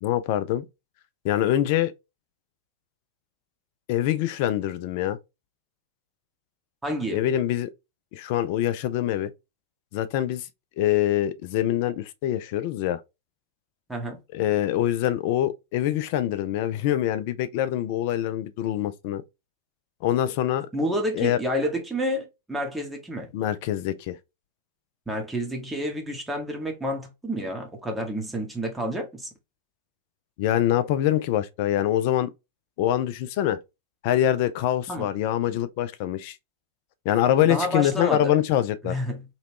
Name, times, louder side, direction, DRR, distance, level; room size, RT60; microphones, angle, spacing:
voice 1, 0.0-0.7 1.2-1.9 3.9-5.2 7.1-7.7 8.1-9.3 9.9-10.5 10.8-13.0 14.3-19.2 20.0-20.7 21.1-21.4 23.3-24.2 30.4-32.3 32.8-33.6 34.0-36.4 37.0-38.9, left 12 dB, 45° left, 0.4 m, -24 dB
voice 2, 6.8-7.3 13.9-14.2 20.7-23.3 25.1-29.3 34.9-35.1 37.5-38.3 38.8-39.2, equal, 10° right, 1.0 m, -29 dB
3.0 x 3.0 x 2.8 m
figure-of-eight pair, 90°, 0 cm